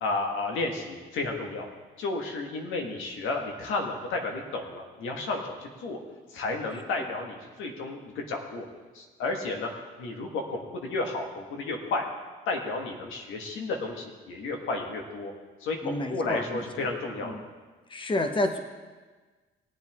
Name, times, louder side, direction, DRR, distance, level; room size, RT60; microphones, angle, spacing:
voice 1, 0.0-1.7 2.0-6.0 6.3-8.7 8.9-9.7 10.0-12.0 12.5-15.3 15.6-17.3, left 3 dB, 90° left, 2 dB, 1.7 m, -32 dB
voice 2, 15.8-16.9 17.2-17.4 17.9-18.6, left 1 dB, 25° left, 6 dB, 1.1 m, -30 dB
19.5 x 8.0 x 3.6 m, 1.3 s
cardioid pair, 90°, 20 cm